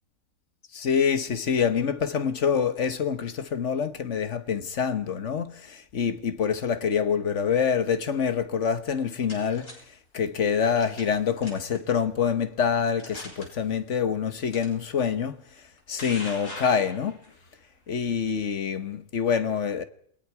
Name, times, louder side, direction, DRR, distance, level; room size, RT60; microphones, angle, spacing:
voice 1, 0.7-9.8 10.1-17.2 17.9-19.8, left 7 dB, 55° left, 1.4 m, -26 dB
sound 1, 8.8-9.7 10.8-11.1 11.4-11.8 12.4-12.5 13.0-13.5 14.5-14.7 15.6-17.3, left 1 dB, 80° left, 5.8 m, -41 dB
27.5 x 20.5 x 4.8 m
omnidirectional pair, 1.5 m